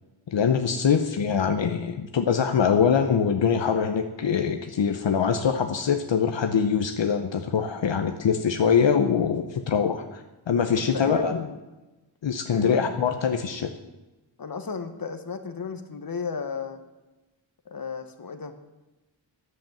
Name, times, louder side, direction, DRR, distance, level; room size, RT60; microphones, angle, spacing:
voice 1, 0.3-11.4 12.2-13.7, left 7 dB, 70° left, 6 dB, 0.9 m, -23 dB
voice 2, 10.7-11.6 12.5-12.9 14.4-16.8 17.7-18.5, left 5 dB, 50° left, 8 dB, 1.2 m, -34 dB
10.0 x 8.0 x 7.4 m, 1.1 s
wide cardioid pair, 105°, 45 cm